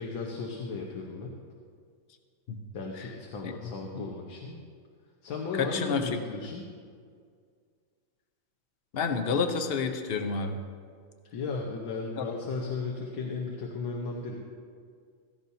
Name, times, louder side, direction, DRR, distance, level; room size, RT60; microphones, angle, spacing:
voice 1, 0.0-1.4 2.7-4.6 5.2-6.6 11.3-14.4, left 4 dB, 75° left, -1 dB, 1.9 m, -35 dB
voice 2, 3.4-4.0 5.6-6.2 8.9-10.6 12.2-12.3, left 5 dB, 50° left, 6 dB, 0.7 m, -30 dB
16.0 x 15.0 x 2.8 m, 2.1 s
omnidirectional pair, 2.1 m